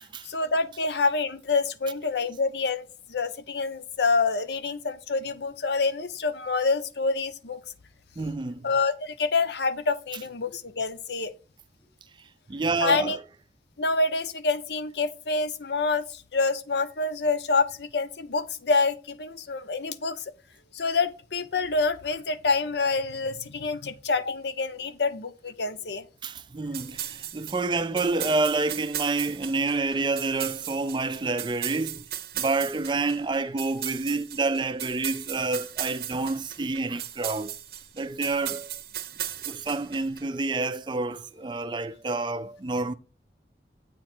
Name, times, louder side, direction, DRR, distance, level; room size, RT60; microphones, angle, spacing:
voice 1, 0.2-7.6 8.6-11.3 12.8-13.2 13.8-20.2 20.7-26.0, left 4 dB, 75° left, 0.7 m, -27 dB
voice 2, 8.2-8.7 12.5-13.2 26.2-32.0 32.3-37.5 37.9-38.8 39.4-42.9, right 3 dB, 25° right, 0.4 m, -28 dB
sound 1, 26.7-40.2, right 11 dB, 55° right, 0.7 m, -37 dB
8.5 x 2.9 x 6.0 m
head